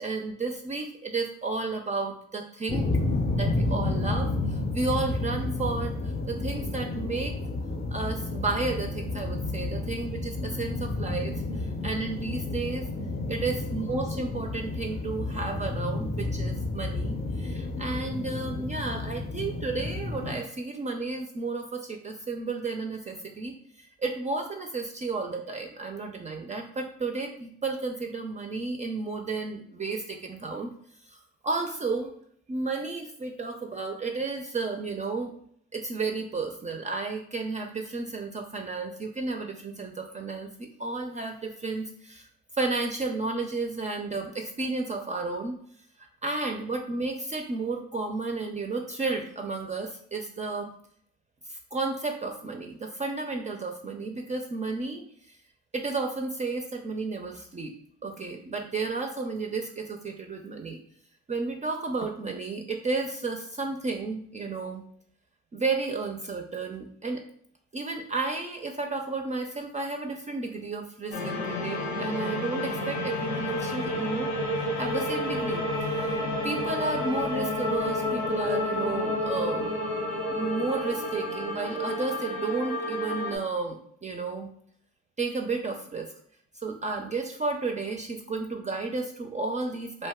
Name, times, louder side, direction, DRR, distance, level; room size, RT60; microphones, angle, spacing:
voice 1, 0.0-2.9 3.4-7.4 7.9-12.9 13.3-30.7 31.1-32.1 32.5-35.3 35.7-42.3 42.5-45.6 46.2-50.7 51.5-55.4 55.7-57.7 58.0-60.8 61.3-64.8 65.5-67.2 67.7-74.3 74.8-75.6 75.9-79.7 80.3-84.5 85.2-86.1 86.5-90.1, right 3 dB, 25° right, 3 dB, 0.4 m, -32 dB
sound 1, 2.7-20.3, left 2 dB, 30° left, 0.5 m, -31 dB
sound 2, 71.1-83.4, left 1 dB, 90° left, 0.8 m, -30 dB
2.5 x 2.2 x 3.5 m, 0.64 s
supercardioid pair, 65°, 30 cm